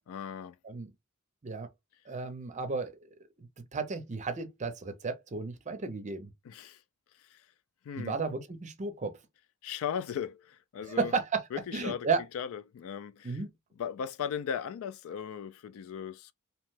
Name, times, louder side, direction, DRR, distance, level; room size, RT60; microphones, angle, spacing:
voice 1, 0.1-0.6 6.4-6.8 7.3-7.4 7.9-8.2 9.6-11.1 11.5-12.1 12.3-13.4 13.8-16.3, left 8 dB, 65° left, 0.3 m, -37 dB
voice 2, 2.1-2.9 3.4-3.5 3.7-6.3 8.0-9.1 10.9-11.4 11.7-12.2 13.2-13.5, right 4 dB, 35° right, 0.6 m, -33 dB
2.9 x 2.1 x 3.1 m
head